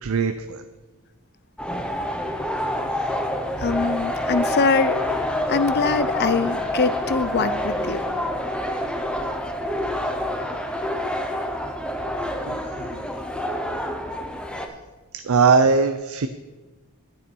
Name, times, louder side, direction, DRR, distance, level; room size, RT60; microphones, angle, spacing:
voice 1, 0.0-0.6 12.5-13.0 15.2-16.3, right 4 dB, 70° right, 9 dB, 0.5 m, -20 dB
sound 1, 1.6-14.7, left 1 dB, 5° left, 0.8 m, -27 dB
voice 2, 3.6-5.0 5.5-8.0, left 4 dB, 45° left, 14 dB, 0.5 m, -23 dB
12.5 x 8.8 x 4.6 m, 1.2 s
head